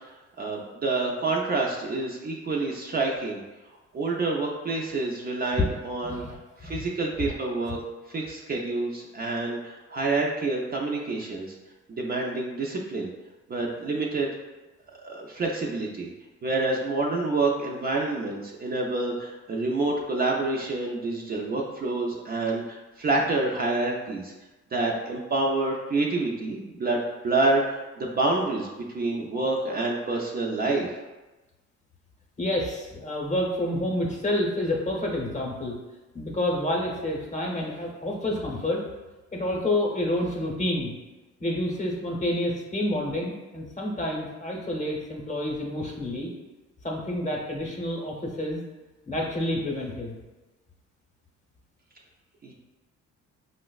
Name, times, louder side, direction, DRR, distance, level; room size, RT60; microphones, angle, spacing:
voice 1, 0.4-3.4 3.9-6.2 6.6-7.8 8.1-11.6 11.9-13.1 13.5-14.3 15.0-16.1 16.4-24.3 24.7-28.7 28.9-31.0 52.4-52.5, right 2 dB, 30° right, -2 dB, 0.4 m, -27 dB
voice 2, 6.0-6.4 6.6-6.9 32.4-35.7 36.1-38.8 39.3-40.9 41.4-46.3 46.8-48.6 49.1-50.1, left 1 dB, 25° left, -2 dB, 0.8 m, -29 dB
4.9 x 2.1 x 2.3 m, 1.1 s
cardioid pair, 90°, 30 cm